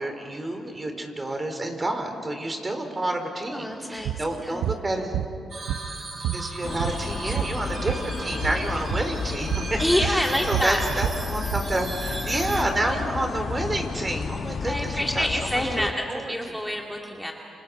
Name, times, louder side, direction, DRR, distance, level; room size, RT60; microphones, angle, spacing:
voice 1, 0.0-5.2 6.3-16.3, right 1 dB, 30° right, 5 dB, 4.3 m, -29 dB
voice 2, 3.5-4.6 9.8-10.9 14.7-17.3, equal, 5° left, 1 dB, 2.3 m, -27 dB
sound 1, 4.0-4.2 4.6-4.8 5.1-6.0 6.2-8.1 8.3-8.6 8.9-9.1 9.5-9.7 10.0-11.7, right 12 dB, 80° right, 0.7 m, -29 dB
sound 2, 5.5-12.6, right 2 dB, 50° right, 6.4 m, -36 dB
sound 3, 6.6-15.9, left 5 dB, 55° left, 1.1 m, -32 dB
29.5 x 26.5 x 5.5 m, 2.8 s
supercardioid pair, 55°, 0 cm